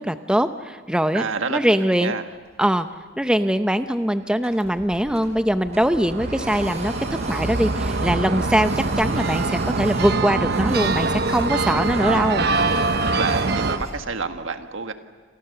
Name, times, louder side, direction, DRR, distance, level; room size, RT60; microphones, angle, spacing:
voice 1, 0.0-1.2 1.5-2.1 2.6-2.9 3.2-6.9 7.3-12.5, equal, 5° right, 9 dB, 0.7 m, -22 dB
voice 2, 1.1-1.6 2.0-2.2 13.1-14.9, right 4 dB, 75° right, 7 dB, 1.7 m, -28 dB
Printer, 2.3-2.9 3.3-3.4 3.9-5.4 5.7-13.9, right 2 dB, 35° right, 5.2 m, -38 dB
sound 1, 4.5-14.0, equal, 25° left, 6.1 m, -43 dB
sound 2, 5.7-13.8, right 3 dB, 55° right, 1.0 m, -24 dB
29.5 x 27.0 x 6.9 m, 1.5 s
head